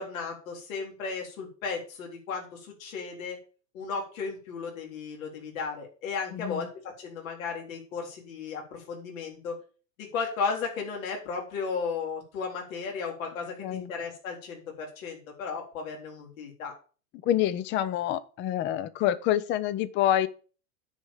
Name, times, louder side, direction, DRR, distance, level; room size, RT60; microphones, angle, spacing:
voice 1, 0.0-3.4 3.7-6.7 7.0-9.5 10.1-16.7, left 5 dB, 70° left, 3.9 m, -35 dB
voice 2, 6.3-6.7 13.6-13.9 17.2-20.3, left 11 dB, 25° left, 0.6 m, -27 dB
9.9 x 5.0 x 7.3 m
supercardioid pair, 140°, 42 cm